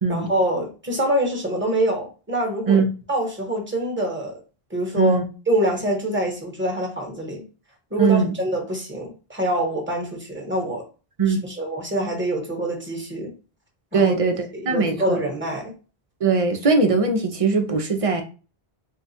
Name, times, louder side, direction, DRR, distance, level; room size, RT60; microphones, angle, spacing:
voice 1, 0.1-2.8 3.1-4.4 4.7-5.2 5.5-7.4 7.9-10.8 11.3-13.3 13.9-14.1 14.5-15.7, right 1 dB, 10° right, 1.1 m, -25 dB
voice 2, 8.0-8.3 11.2-11.4 13.9-15.2 16.2-18.2, right 4 dB, 40° right, 0.6 m, -20 dB
3.6 x 2.3 x 4.1 m
omnidirectional pair, 1.0 m